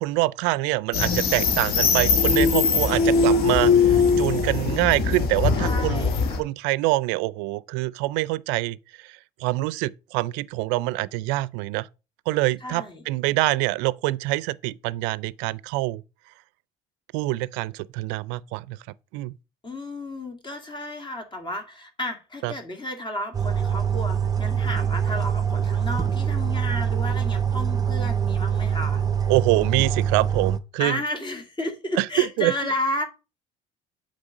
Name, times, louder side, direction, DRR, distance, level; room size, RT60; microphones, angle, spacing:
voice 1, 0.0-8.8 9.4-11.9 12.3-16.0 17.1-18.8 19.1-19.3 22.4-22.5 29.3-31.0 32.0-32.5, right 19 dB, 75° right, 0.4 m, -25 dB
sound 1, 0.9-6.4, left 5 dB, 60° left, 1.5 m, -21 dB
voice 2, 5.6-6.4 12.6-13.0 19.6-29.0 30.8-33.0, left 1 dB, 25° left, 2.0 m, -32 dB
sound 2, 23.3-30.6, right 8 dB, 20° right, 0.7 m, -24 dB
7.9 x 3.2 x 5.4 m
supercardioid pair, 80°, 18 cm